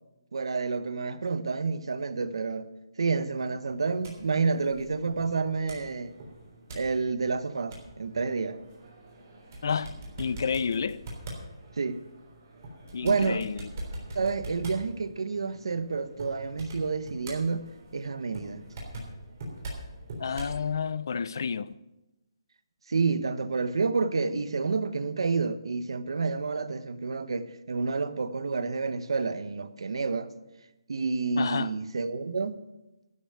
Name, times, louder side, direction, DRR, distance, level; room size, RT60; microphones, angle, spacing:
voice 1, 0.3-2.7 3.0-6.1 6.7-8.6 11.8-12.0 13.0-13.4 14.1-18.6 22.9-30.3 30.9-32.6, right 4 dB, 70° right, 0.9 m, -29 dB
sound 1, 3.7-20.6, right 1 dB, 35° right, 3.5 m, -43 dB
voice 2, 9.6-9.9 10.2-11.0 12.9-13.7 20.2-21.8 31.4-31.7, left 6 dB, 45° left, 0.4 m, -30 dB
12.0 x 6.8 x 8.8 m
hypercardioid pair, 170°, 3 cm